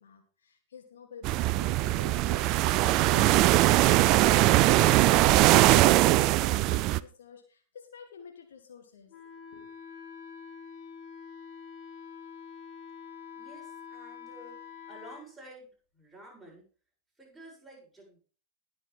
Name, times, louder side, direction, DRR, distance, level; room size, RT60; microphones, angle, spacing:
voice 1, 0.0-9.7, left 6 dB, 65° left, 4 dB, 1.9 m, -50 dB
sound 1, 1.2-7.0, right 16 dB, 40° right, 0.5 m, -21 dB
Wind instrument woodwind instrument, 9.1-15.3, left 6 dB, 35° left, 2.5 m, -46 dB
voice 2, 13.4-16.6 17.2-18.2, right 1 dB, ahead, -5 dB, 7.7 m, -51 dB
20.5 x 7.0 x 3.6 m, 0.40 s
figure-of-eight pair, 90°, 0 cm